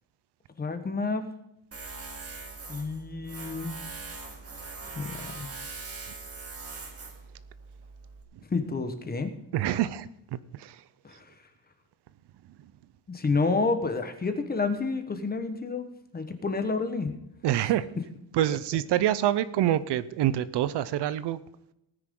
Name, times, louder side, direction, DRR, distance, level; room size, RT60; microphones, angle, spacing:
voice 1, 0.6-1.3 2.7-3.8 4.9-5.5 8.5-9.3 11.0-11.3 13.1-15.9 16.1-17.1, left 3 dB, 20° left, 8 dB, 1.3 m, -29 dB
Tools, 1.7-8.2, right 3 dB, 35° right, 2.4 m, -41 dB
voice 2, 9.5-10.8 17.4-17.9 18.3-21.4, right 12 dB, 70° right, 15 dB, 0.7 m, -26 dB
19.0 x 9.9 x 3.8 m, 0.85 s
cardioid pair, 160°, 43 cm